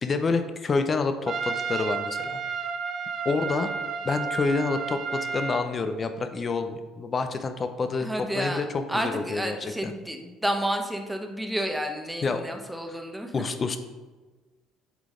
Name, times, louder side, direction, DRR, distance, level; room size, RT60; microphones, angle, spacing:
voice 1, 0.0-2.4 3.2-3.7 4.0-8.1 8.4-9.9 12.2-12.4 12.9-13.0 13.3-13.8, left 4 dB, 35° left, 8 dB, 0.6 m, -28 dB
Trumpet, 1.3-5.7, right 5 dB, 45° right, 0.7 m, -31 dB
voice 2, 8.0-13.3, right 1 dB, 5° right, 4 dB, 0.9 m, -31 dB
8.1 x 4.0 x 3.7 m, 1.3 s
supercardioid pair, 80°, 0 cm